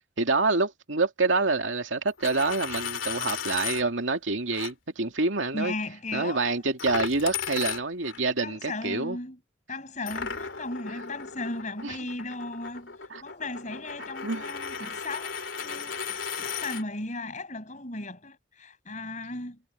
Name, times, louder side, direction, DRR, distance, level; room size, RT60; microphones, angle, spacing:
voice 1, 0.2-5.7 6.1-9.2 11.8-11.9 13.1-13.2 14.2-14.5 14.8-14.9, right 3 dB, 85° right, 2.4 m, -27 dB
Coin (dropping), 2.1-3.8 4.5-4.7 6.8-8.2 10.1-16.8, left 7 dB, 90° left, 3.1 m, -35 dB
voice 2, 5.5-6.6 8.4-9.4 9.7-19.6, left 2 dB, 40° left, 7.0 m, -36 dB
head